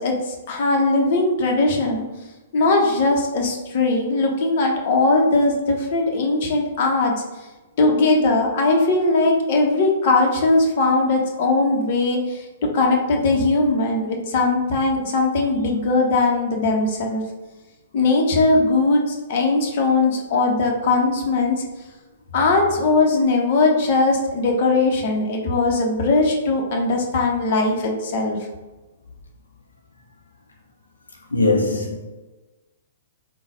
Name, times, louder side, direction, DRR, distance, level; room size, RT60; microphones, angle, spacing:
voice 1, 0.0-2.0 2.5-7.1 7.8-17.2 17.9-21.6 22.3-28.4, left 3 dB, 50° left, 0.9 m, -19 dB
voice 2, 31.3-32.0, left 2 dB, 85° left, 0.7 m, -20 dB
3.9 x 2.3 x 4.2 m
figure-of-eight pair, 115°, 0 cm